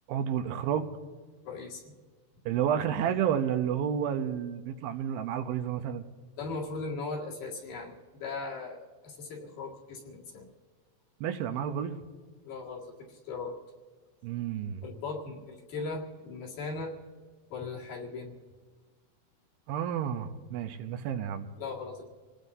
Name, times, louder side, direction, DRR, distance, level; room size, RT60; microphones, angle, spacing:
voice 1, 0.1-1.0 2.5-6.1 11.2-12.0 14.2-14.8 19.7-21.5, right 9 dB, 80° right, 7 dB, 2.5 m, -30 dB
voice 2, 1.4-2.0 6.4-10.5 12.4-13.6 14.8-16.9 17.5-18.3 21.6-22.1, left 3 dB, 65° left, -2 dB, 3.6 m, -38 dB
27.0 x 18.5 x 2.7 m, 1.4 s
omnidirectional pair, 4.4 m